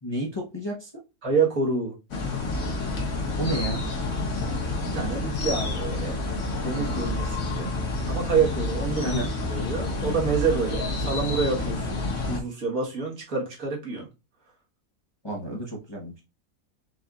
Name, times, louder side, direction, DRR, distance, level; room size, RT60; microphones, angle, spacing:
voice 1, 0.0-0.9 3.4-3.8 9.0-9.3 15.2-16.2, right 1 dB, 20° left, 0.9 m, -31 dB
voice 2, 1.2-1.9 4.8-6.2 6.6-7.8 8.1-9.2 9.5-14.1, right 5 dB, 65° right, 2.0 m, -27 dB
sound 1, 2.1-12.4, left 2 dB, 70° left, 1.7 m, -29 dB
5.4 x 2.6 x 3.6 m
omnidirectional pair, 1.5 m